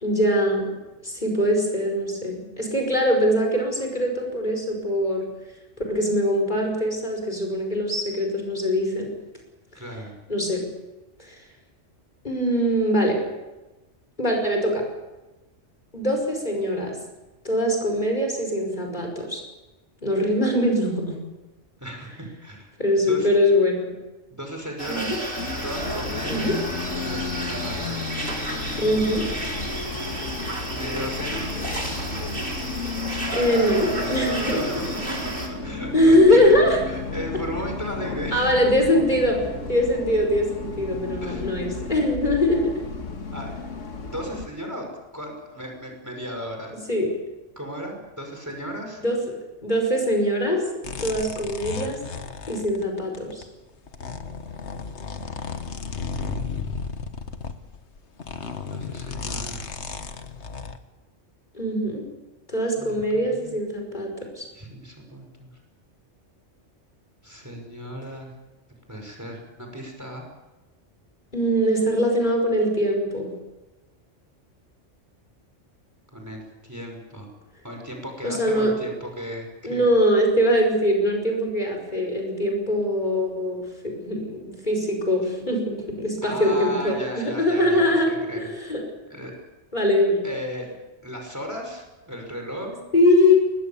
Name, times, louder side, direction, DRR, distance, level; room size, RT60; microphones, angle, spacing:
voice 1, 0.0-0.7 1.0-5.2 5.9-9.1 10.3-10.6 11.2-11.4 12.2-13.2 14.2-14.8 15.9-16.9 17.4-19.4 20.0-21.2 22.8-23.9 24.9-25.2 26.3-26.6 28.8-29.2 33.3-34.6 35.9-36.8 38.3-39.4 39.7-42.7 46.9-47.1 49.0-49.2 49.6-50.6 51.0-52.0 52.5-53.4 61.5-62.0 62.5-64.5 71.3-73.3 78.2-78.7 79.6-88.8 89.7-90.2 92.9-93.4, left 1 dB, 40° left, 2 dB, 5.5 m, -22 dB
voice 2, 9.7-10.1 21.8-22.7 23.1-23.3 24.3-25.1 25.6-26.5 27.0-28.0 30.7-31.5 34.4-35.0 35.6-36.6 36.9-38.5 41.2-41.5 43.3-43.6 44.1-46.7 47.6-49.0 56.1-56.3 58.7-59.8 62.8-63.6 64.5-65.5 67.2-68.3 68.9-70.3 76.1-77.3 77.6-79.9 86.2-88.5 89.1-89.4 90.2-92.8, equal, 15° right, 2 dB, 5.4 m, -35 dB
sound 1, 24.8-35.5, right 1 dB, 45° right, 4.9 m, -32 dB
Bus, 25.4-44.5, left 4 dB, 85° left, 2.0 m, -33 dB
sound 2, 50.8-53.4 53.9-60.8, left 5 dB, 65° left, 1.6 m, -34 dB
23.0 x 21.0 x 7.2 m, 1.1 s
omnidirectional pair, 1.2 m